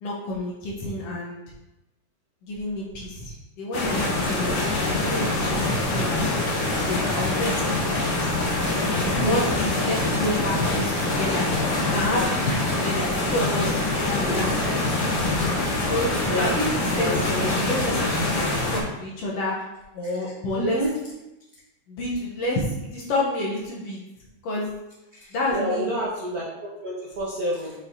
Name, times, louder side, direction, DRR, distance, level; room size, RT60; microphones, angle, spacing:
voice 1, 0.0-1.4 2.4-8.3 9.0-11.4 11.8-14.6 15.9-19.6 19.9-20.8 21.9-24.0 24.4-24.7 25.3-25.9, left 1 dB, 65° left, -4 dB, 1.8 m, -29 dB
sound 1, 3.7-18.8, left 2 dB, 90° left, 3.1 m, -24 dB
voice 2, 14.1-14.4 16.2-16.6 16.9-17.4 20.5-20.9 25.2-27.7, equal, 70° right, -6 dB, 0.8 m, -29 dB
6.8 x 5.5 x 2.8 m, 0.95 s
omnidirectional pair, 3.5 m